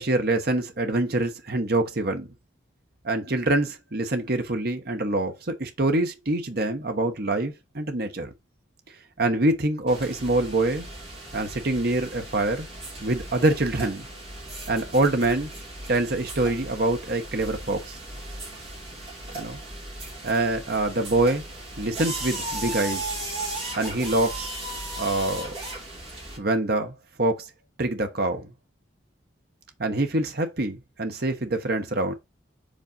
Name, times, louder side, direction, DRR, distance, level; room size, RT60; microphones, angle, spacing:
voice 1, 0.0-2.3 3.0-8.3 9.2-10.8 11.3-12.7 13.0-14.0 14.7-15.5 15.9-18.0 19.3-19.6 20.2-21.4 21.8-23.0 23.8-24.5 25.0-25.5 26.4-27.4 27.8-28.5 29.8-32.1, right 2 dB, 50° right, 1.0 m, -25 dB
sound 1, 9.9-26.4, right 1 dB, 30° right, 2.9 m, -36 dB
5.3 x 4.0 x 5.3 m
head